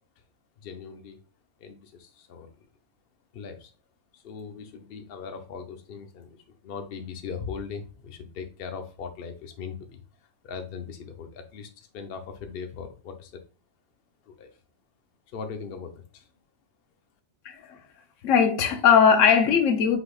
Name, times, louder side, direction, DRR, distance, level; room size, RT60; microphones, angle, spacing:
voice 1, 0.6-1.2 1.6-2.5 3.3-3.7 4.1-10.0 10.4-13.4 14.2-14.6 15.3-16.3, left 6 dB, 55° left, 0.8 m, -39 dB
voice 2, 17.4-17.8 18.2-20.0, left 7 dB, 80° left, 1.1 m, -19 dB
5.9 x 3.4 x 2.3 m
omnidirectional pair, 1.3 m